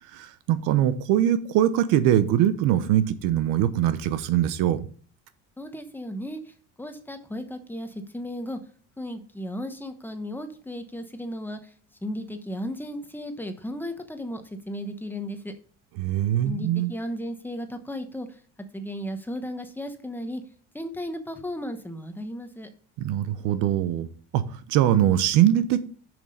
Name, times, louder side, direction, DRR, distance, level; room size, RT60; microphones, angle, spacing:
voice 1, 0.1-4.9 16.0-16.9 23.0-24.1 24.3-24.4 24.7-25.8, right 11 dB, 80° right, 13 dB, 0.9 m, -22 dB
voice 2, 5.6-8.6 9.0-11.7 12.0-15.5 16.4-18.4 18.7-20.4 20.7-22.7, equal, 5° left, 7 dB, 1.0 m, -35 dB
7.2 x 6.1 x 5.2 m, 0.43 s
cardioid pair, 130°, 31 cm